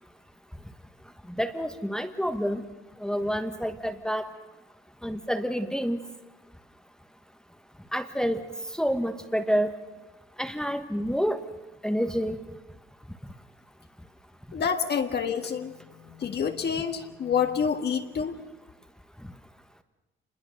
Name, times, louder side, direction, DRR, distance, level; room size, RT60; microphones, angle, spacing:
voice 1, 1.4-2.6 3.0-4.3 5.0-6.0 7.9-8.4 8.8-9.7 10.4-11.4 11.8-12.4, equal, 5° left, 7 dB, 1.4 m, -28 dB
voice 2, 14.5-15.7 16.1-18.4, left 6 dB, 55° left, 6 dB, 1.8 m, -28 dB
26.0 x 21.0 x 6.6 m, 1.1 s
cardioid pair, 90°, 20 cm